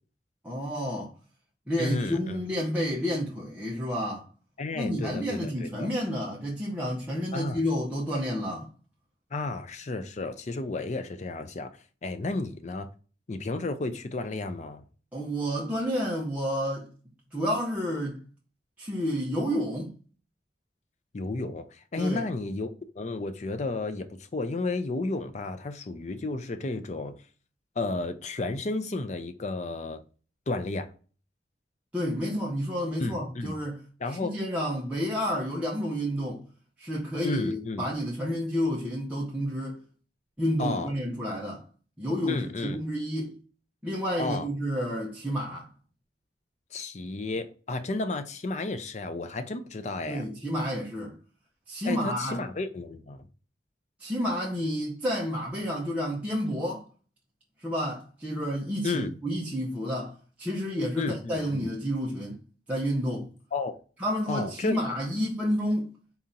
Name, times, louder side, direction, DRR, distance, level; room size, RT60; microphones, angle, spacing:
voice 1, 0.4-1.1 1.7-4.2 4.7-8.7 15.1-16.9 17.3-18.2 18.8-20.0 22.0-22.3 31.9-33.8 34.1-36.4 36.8-39.8 40.4-41.6 42.0-43.3 43.8-45.7 50.1-51.2 51.7-52.4 54.0-56.9 57.6-62.4 62.7-63.3 64.0-65.9, equal, 10° right, 0.7 m, -30 dB
voice 2, 1.8-2.4 4.6-5.9 7.3-7.6 9.3-11.7 12.0-12.9 13.3-14.8 21.1-27.1 27.8-30.0 30.5-30.9 33.0-33.5 34.0-34.4 37.2-37.9 40.6-40.9 42.3-42.8 44.2-44.5 46.7-50.2 51.8-53.3 58.8-59.1 61.0-61.7 63.5-63.8 64.3-64.8, left 3 dB, 40° left, 0.5 m, -32 dB
4.1 x 2.8 x 3.7 m
head